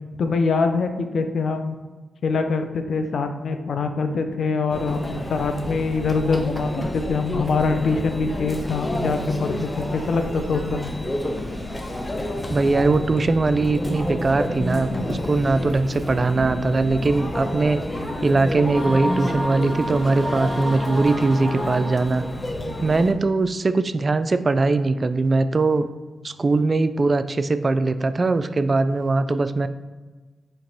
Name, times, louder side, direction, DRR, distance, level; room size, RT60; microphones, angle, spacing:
voice 1, 0.2-1.7 2.2-10.9, left 4 dB, 70° left, 7 dB, 0.5 m, -24 dB
Conversation / Chatter / Crowd, 4.7-23.1, left 1 dB, 25° left, 0.8 m, -30 dB
voice 2, 12.5-17.8 18.2-22.2 22.8-25.9 26.2-29.7, right 3 dB, 45° right, 11 dB, 0.3 m, -21 dB
sound 1, 18.6-22.4, equal, 20° right, 1.3 m, -31 dB
4.5 x 2.9 x 4.0 m, 1.3 s
supercardioid pair, 50°, 0 cm